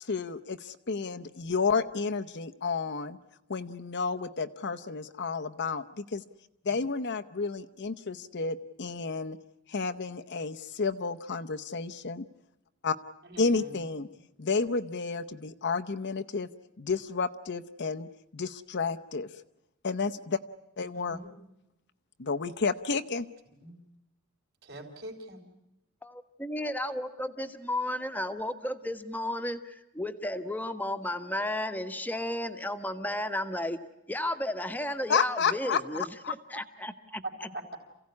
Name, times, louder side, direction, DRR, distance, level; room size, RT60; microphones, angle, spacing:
voice 1, 0.0-3.2 3.5-6.2 6.6-9.4 9.7-12.2 12.8-13.0 13.4-14.1 14.4-16.5 16.8-18.1 18.3-19.3 19.8-20.4 20.8-21.2 22.2-23.3 35.1-35.8 36.2-36.3, left 4 dB, 50° left, 9 dB, 0.8 m, -31 dB
voice 2, 13.2-13.8 20.9-21.3 23.6-23.7 24.6-25.4 37.5-37.8, right 1 dB, 50° right, 2 dB, 4.1 m, -44 dB
voice 3, 26.0-33.8 34.1-37.5, left 1 dB, 10° left, 8 dB, 1.2 m, -33 dB
28.0 x 16.5 x 9.7 m, 0.89 s
head